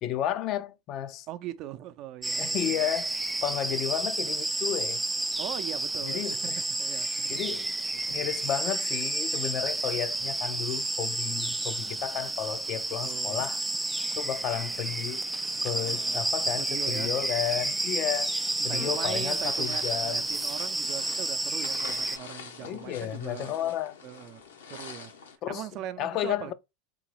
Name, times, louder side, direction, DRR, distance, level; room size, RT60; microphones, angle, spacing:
voice 1, 0.0-1.3 2.4-3.1 3.4-5.0 6.0-6.6 7.3-7.8 8.1-13.6 14.2-15.2 15.6-18.3 18.6-20.2 22.6-24.0 25.4-25.7 26.0-26.5, left 12 dB, 50° left, 0.5 m, -32 dB
voice 2, 1.3-2.8 3.5-3.8 5.4-6.4 6.8-7.6 8.1-8.2 10.3-10.4 13.0-13.5 15.5-16.3 16.6-17.1 18.6-23.7 24.0-24.4 24.7-25.1 25.5-26.5, right 13 dB, 50° right, 0.6 m, -41 dB
sound 1, 2.2-22.2, right 2 dB, 10° right, 0.3 m, -31 dB
sound 2, 14.0-22.0, right 4 dB, 90° right, 0.7 m, -53 dB
sound 3, 18.8-25.4, left 6 dB, 80° left, 1.0 m, -46 dB
3.8 x 3.7 x 3.0 m
hypercardioid pair, 85°, 0 cm